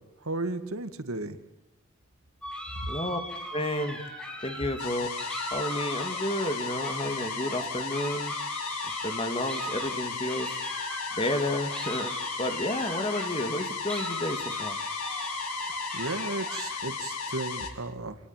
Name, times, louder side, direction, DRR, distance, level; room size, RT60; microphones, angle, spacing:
voice 1, 0.2-1.4 15.9-18.2, right 2 dB, 80° right, 10 dB, 2.1 m, -34 dB
sound 1, 2.4-16.7, equal, 5° left, 4.8 m, -39 dB
voice 2, 2.9-3.2 3.5-4.0 4.4-5.1 5.5-8.3 9.0-10.6 11.2-12.1 12.4-14.8, left 1 dB, 25° left, 7 dB, 2.7 m, -31 dB
sound 2, 4.8-17.7, left 5 dB, 90° left, 3.7 m, -35 dB
28.0 x 19.0 x 9.2 m, 0.94 s
head